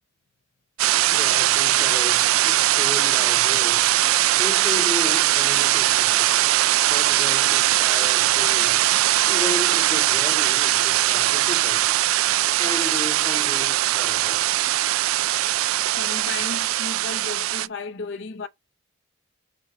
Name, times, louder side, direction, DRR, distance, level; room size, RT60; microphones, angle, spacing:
sound 1, 0.8-17.7, right 14 dB, 90° right, 0.3 m, -20 dB
voice 1, 1.1-3.9 4.4-6.3 6.8-8.9 9.3-11.9 12.6-14.6, left 1 dB, 15° left, 0.8 m, -34 dB
voice 2, 15.5-18.5, left 4 dB, 60° left, 0.6 m, -35 dB
6.0 x 3.9 x 5.0 m
head